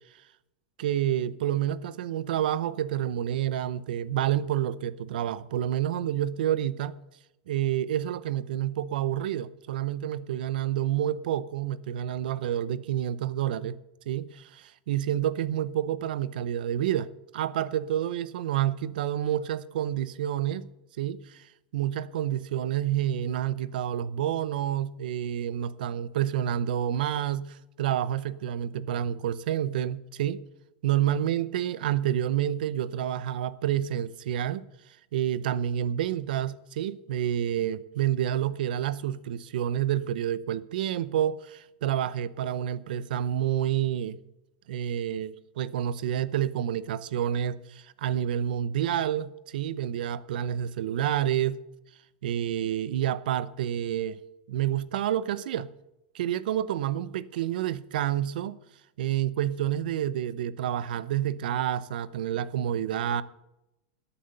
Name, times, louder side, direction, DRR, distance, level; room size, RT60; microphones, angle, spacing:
voice 1, 0.8-6.9 7.5-13.8 14.1-17.1 17.3-20.7 21.0-30.4 30.8-34.7 35.1-44.2 44.7-51.6 52.2-54.2 54.5-55.7 56.1-58.6 59.0-63.2, right 11 dB, 75° right, 0.8 m, -29 dB
13.0 x 8.6 x 6.8 m
supercardioid pair, 145°, 5 cm